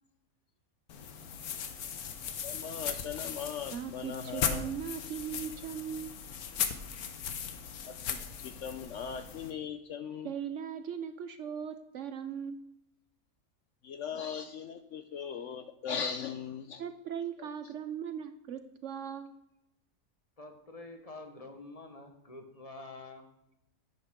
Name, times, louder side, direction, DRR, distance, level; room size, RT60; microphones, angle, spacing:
sound 1, 0.9-9.5, left 7 dB, 85° left, 1.4 m, -38 dB
voice 1, 2.4-4.7 7.9-10.3 13.8-16.8 17.4-17.5, left 7 dB, 65° left, 9 dB, 0.8 m, -39 dB
voice 2, 3.7-6.1 10.2-12.8 16.8-19.4, right 8 dB, 65° right, 10 dB, 0.9 m, -39 dB
voice 3, 20.4-23.3, left 2 dB, 25° left, 5 dB, 1.2 m, -47 dB
10.5 x 8.6 x 3.7 m, 0.83 s
omnidirectional pair, 1.5 m